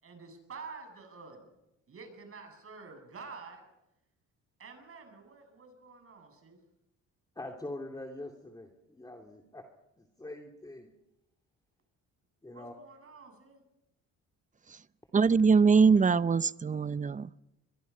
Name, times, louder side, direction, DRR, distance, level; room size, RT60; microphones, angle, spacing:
voice 1, 0.0-1.6 1.9-3.6 4.6-6.6 12.5-13.6, right 4 dB, 50° right, 7.8 m, -48 dB
voice 2, 7.4-9.6 10.0-10.9 12.4-12.7, left 1 dB, 15° left, 2.8 m, -43 dB
voice 3, 15.1-17.3, right 5 dB, 25° right, 0.7 m, -23 dB
23.5 x 23.0 x 5.6 m
cardioid pair, 90°, 30 cm